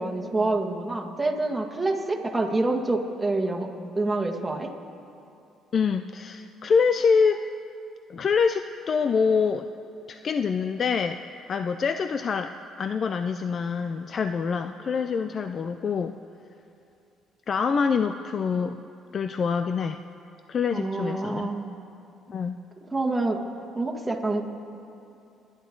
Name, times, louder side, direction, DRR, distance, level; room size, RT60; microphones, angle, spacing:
voice 1, 0.0-3.7 4.0-4.7 20.7-21.8 22.9-23.4 23.8-24.4, right 2 dB, 15° right, 1 dB, 1.8 m, -27 dB
voice 2, 5.7-7.5 8.1-9.7 10.1-12.5 12.8-16.1 17.5-18.8 19.1-20.0 20.5-21.5 22.3-22.5, left 5 dB, 45° left, 9 dB, 0.5 m, -25 dB
28.5 x 10.5 x 3.9 m, 2.6 s
cardioid pair, 85°, 0 cm